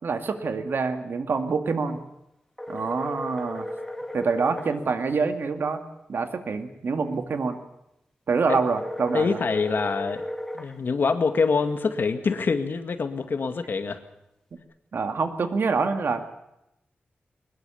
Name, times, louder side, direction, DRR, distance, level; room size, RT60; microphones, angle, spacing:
voice 1, 0.0-2.0 2.7-3.7 4.1-5.8 6.1-7.6 8.3-9.4 14.9-16.4, right 4 dB, 70° right, 7 dB, 2.2 m, -26 dB
sound 1, 2.6-4.7 8.6-10.7, left 1 dB, 5° left, 2.9 m, -35 dB
voice 2, 9.1-10.3 10.5-14.0, left 4 dB, 65° left, 8 dB, 2.0 m, -25 dB
22.0 x 21.0 x 7.1 m, 0.85 s
wide cardioid pair, 125°, 4 cm